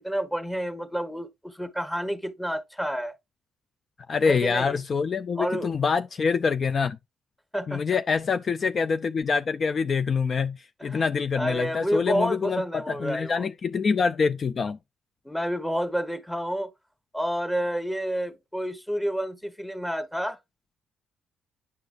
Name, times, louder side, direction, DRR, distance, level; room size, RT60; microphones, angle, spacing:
voice 1, 0.0-3.1 4.3-4.8 5.4-5.7 7.5-7.8 10.8-11.0 11.3-13.5 15.2-16.7 17.1-20.4, equal, 5° left, 1.1 m, -29 dB
voice 2, 4.1-7.0 7.7-14.8, left 5 dB, 45° left, 0.4 m, -25 dB
9.4 x 5.0 x 2.4 m
cardioid pair, 90°, 0 cm